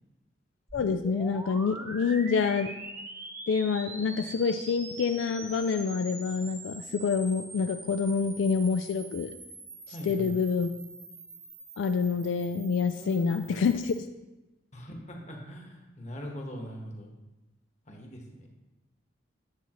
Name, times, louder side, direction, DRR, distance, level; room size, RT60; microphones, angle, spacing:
voice 1, 0.7-2.7 3.5-9.3 10.0-10.7 11.8-13.9, left 5 dB, 80° left, 8 dB, 0.3 m, -27 dB
sound 1, 0.7-14.0, right 2 dB, 15° right, 0.6 m, -44 dB
voice 2, 9.9-10.4 12.9-13.4 14.7-17.1 17.9-18.5, equal, 40° left, 1 dB, 1.3 m, -41 dB
9.7 x 7.0 x 3.0 m, 1.1 s
head